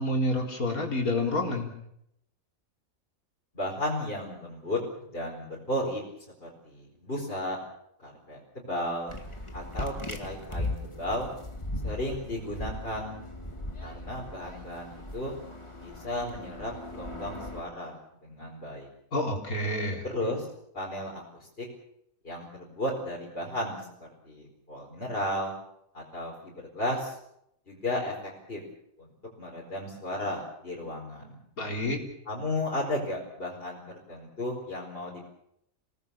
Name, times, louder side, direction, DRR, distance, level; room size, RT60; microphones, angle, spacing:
voice 1, 0.0-1.7 19.1-20.0 31.6-32.0, left 1 dB, 80° left, 1 dB, 4.3 m, -28 dB
voice 2, 3.5-6.0 6.4-7.6 8.0-9.1 9.5-11.3 11.8-13.2 13.8-15.3 15.8-18.9 20.0-20.5 20.7-21.6 22.2-25.5 25.9-27.1 27.7-28.6 29.0-29.1 29.4-31.4 32.3-33.8 34.1-35.3, left 1 dB, 40° left, -4 dB, 4.9 m, -34 dB
sound 1, 9.1-17.6, left 2 dB, 20° left, 2.4 m, -38 dB
27.5 x 18.5 x 7.1 m, 0.77 s
omnidirectional pair, 1.5 m